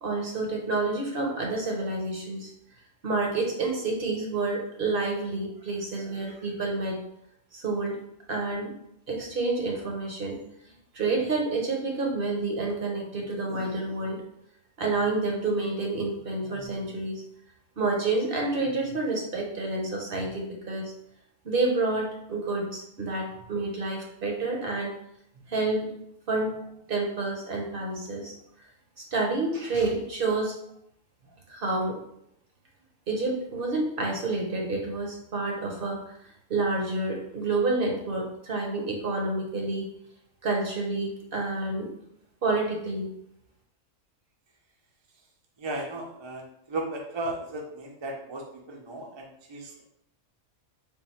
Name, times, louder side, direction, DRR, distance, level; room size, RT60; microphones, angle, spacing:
voice 1, 0.0-2.5 3.0-7.0 7.5-8.0 8.3-8.7 9.1-10.4 10.9-14.2 14.8-17.2 17.8-20.9 21.4-24.9 25.5-25.9 26.3-26.6 26.9-28.3 29.1-30.6 31.5-32.0 33.1-36.0 36.5-39.9 40.4-41.9 42.4-43.1, right 3 dB, 50° right, 0 dB, 0.8 m, -29 dB
voice 2, 45.6-49.8, right 2 dB, 35° right, 0 dB, 0.4 m, -35 dB
3.6 x 2.3 x 4.3 m, 0.74 s
omnidirectional pair, 1.3 m